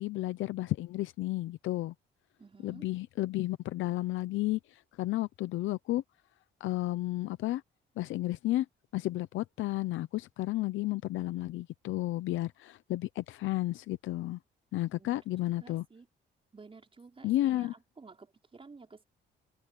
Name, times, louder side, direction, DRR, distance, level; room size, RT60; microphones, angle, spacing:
voice 1, 0.0-1.9 2.6-6.0 6.6-7.6 8.0-8.7 8.9-14.4 14.7-15.8 17.2-17.7, left 16 dB, 85° left, 0.7 m, -32 dB
voice 2, 2.4-2.8 14.9-16.1 16.5-19.0, right 4 dB, 30° right, 5.2 m, -53 dB
cardioid pair, 90°, 20 cm